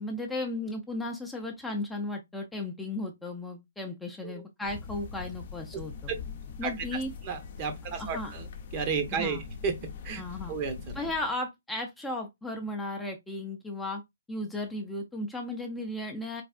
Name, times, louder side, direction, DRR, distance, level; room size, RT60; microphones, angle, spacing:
voice 1, 0.0-5.9 6.6-7.1 8.0-8.3 9.1-9.4 10.2-10.5 10.9-14.0 14.3-16.4, left 2 dB, 5° left, 0.6 m, -35 dB
sound 1, 4.6-11.3, left 6 dB, 45° left, 0.7 m, -42 dB
voice 2, 7.2-8.5 8.7-9.4 9.6-9.8 10.0-10.2 10.5-11.0, right 6 dB, 30° right, 0.8 m, -32 dB
4.0 x 3.4 x 2.3 m
figure-of-eight pair, 130°, 0 cm